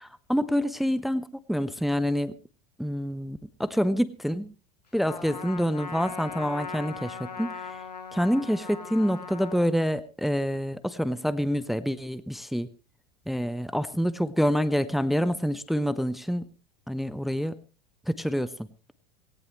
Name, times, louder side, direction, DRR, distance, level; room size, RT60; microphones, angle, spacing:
voice 1, 0.3-2.3 2.8-4.5 4.9-7.5 8.1-12.7 13.3-16.4 16.9-17.5 18.1-18.5, equal, ahead, 16 dB, 0.7 m, -27 dB
Trumpet, 5.1-9.7, left 5 dB, 75° left, 1.8 m, -39 dB
18.0 x 18.0 x 3.1 m, 0.33 s
figure-of-eight pair, 80°, 21 cm